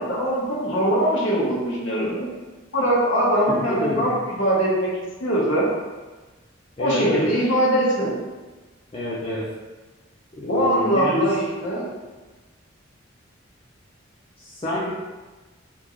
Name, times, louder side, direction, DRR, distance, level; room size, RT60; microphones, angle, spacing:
voice 1, 0.0-2.3 2.7-4.9 5.2-5.7 6.8-8.2 10.5-11.9, right 1 dB, 65° left, -5 dB, 1.0 m, -22 dB
voice 2, 3.5-4.1 6.8-7.3 8.9-9.5 10.3-11.3 14.4-14.9, left 1 dB, 25° left, -7 dB, 0.4 m, -27 dB
3.6 x 2.5 x 3.0 m, 1.2 s
head